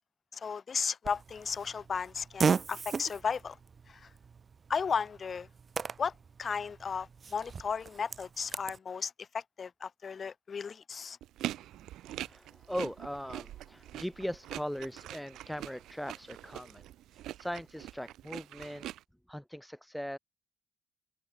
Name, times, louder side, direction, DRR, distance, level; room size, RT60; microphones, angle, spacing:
voice 1, 0.3-3.6 3.9-4.1 4.7-5.5 6.0-6.1 6.4-11.2, left 6 dB, 45° left, 0.7 m, -35 dB
Fart, 1.0-8.8, right 5 dB, 40° right, 0.4 m, -37 dB
sound 1, 11.2-19.0, right 13 dB, 85° right, 3.3 m, -43 dB
voice 2, 12.2-16.8 17.1-18.9 19.3-20.2, equal, ahead, 2.9 m, -39 dB
cardioid pair, 90°, 0 cm